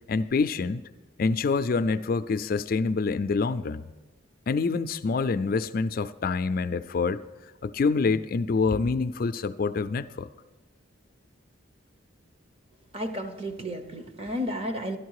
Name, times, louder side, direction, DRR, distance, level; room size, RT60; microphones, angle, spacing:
voice 1, 0.1-0.8 1.2-3.9 4.5-7.2 7.6-10.3, left 4 dB, 45° left, 11 dB, 0.3 m, -26 dB
voice 2, 12.9-15.0, equal, 30° right, 7 dB, 0.8 m, -32 dB
12.5 x 11.5 x 4.7 m, 1.1 s
head